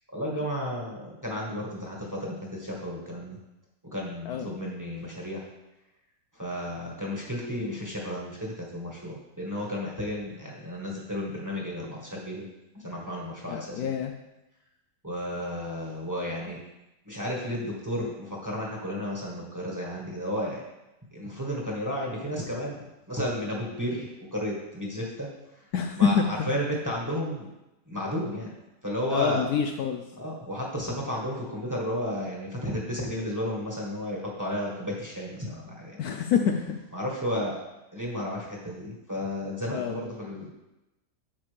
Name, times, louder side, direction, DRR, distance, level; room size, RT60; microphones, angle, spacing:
voice 1, 0.1-3.4 3.9-5.4 6.3-12.4 12.7-13.9 15.0-16.6 17.0-20.6 21.1-25.3 25.5-27.5 27.9-28.5 28.8-29.4 30.2-36.0 36.9-37.6 37.9-40.5, equal, 10° right, -3 dB, 1.4 m, -33 dB
voice 2, 13.5-14.1 25.7-26.3 29.1-30.0 36.0-36.8 39.7-40.0, left 7 dB, 70° left, 5 dB, 1.0 m, -26 dB
8.8 x 7.0 x 3.4 m, 0.96 s
omnidirectional pair, 1.8 m